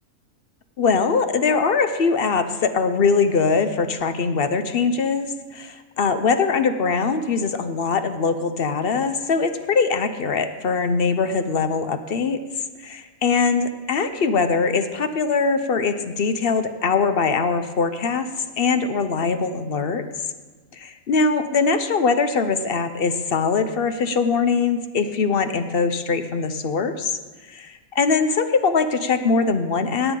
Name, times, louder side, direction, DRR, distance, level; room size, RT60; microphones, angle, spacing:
voice 1, 0.8-12.4 12.8-18.3 18.6-20.1 20.7-27.2 27.5-30.2, left 4 dB, 55° left, 9 dB, 0.7 m, -22 dB
17.5 x 9.0 x 3.8 m, 1.3 s
omnidirectional pair, 1.4 m